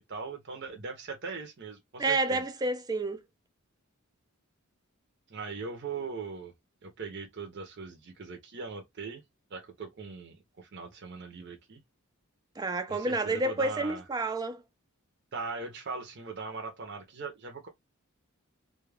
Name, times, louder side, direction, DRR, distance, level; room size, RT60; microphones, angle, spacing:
voice 1, 0.0-2.4 5.3-6.5 6.8-9.2 9.5-11.8 12.9-14.0 15.3-17.7, right 4 dB, 55° right, 0.6 m, -40 dB
voice 2, 2.0-3.2 12.6-14.6, right 2 dB, 20° right, 0.3 m, -29 dB
2.3 x 2.2 x 3.1 m
head